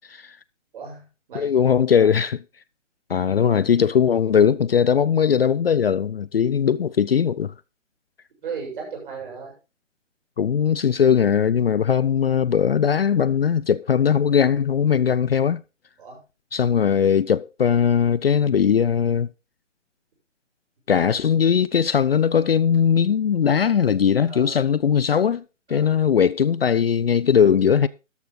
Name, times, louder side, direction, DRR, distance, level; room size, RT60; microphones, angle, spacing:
voice 1, 0.7-2.1 8.4-9.6 16.0-16.2 23.7-24.0 24.3-24.6 25.7-25.9, right 5 dB, 40° right, 7.4 m, -37 dB
voice 2, 1.3-2.4 3.1-7.5 10.4-15.6 16.5-19.3 20.9-25.4 25.7-27.9, left 7 dB, 50° left, 0.5 m, -19 dB
13.0 x 10.0 x 3.9 m
figure-of-eight pair, 150°, 38 cm